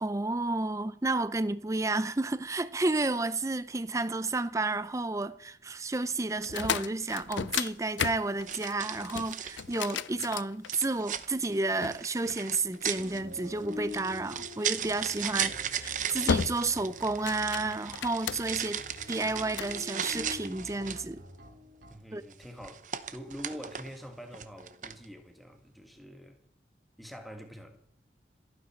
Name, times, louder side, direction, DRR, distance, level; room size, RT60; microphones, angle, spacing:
voice 1, 0.0-15.5 15.8-18.8 19.1-21.2 22.1-22.2, right 3 dB, 15° right, 0.5 m, -31 dB
sound 1, 6.4-11.1 11.8-13.1 14.9-15.2 15.7-15.9 16.3-16.8 17.1-18.7 19.2-19.8, left 7 dB, 85° left, 0.5 m, -34 dB
sound 2, 7.1-7.3 8.5-10.1 10.7-21.1 22.3-24.0 24.3-25.0, right 9 dB, 45° right, 0.9 m, -37 dB
sound 3, 12.7-21.9, left 2 dB, 70° right, 5.1 m, -47 dB
voice 2, 21.9-26.4 27.0-27.8, equal, ahead, 2.0 m, -45 dB
27.5 x 9.4 x 4.5 m
head